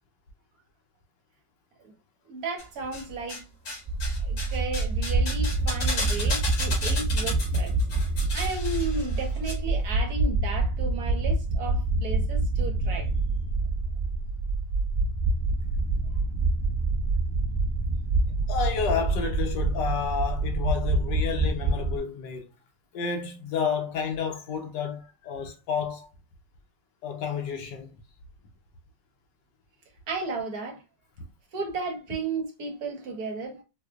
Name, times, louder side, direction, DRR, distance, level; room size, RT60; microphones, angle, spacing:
voice 1, 2.3-3.4 4.2-7.8 8.3-13.1 30.1-30.8 31.5-33.6, right 3 dB, 60° right, 1.3 m, -34 dB
sound 1, 2.6-3.4 3.7-9.5 9.8-9.9, left 2 dB, 90° left, 2.2 m, -34 dB
sound 2, 3.9-22.0, right 2 dB, 20° right, 1.4 m, -26 dB
voice 2, 18.5-22.5 22.9-26.1 27.0-27.9, left 6 dB, 75° left, 1.4 m, -30 dB
4.6 x 2.4 x 2.3 m
omnidirectional pair, 2.0 m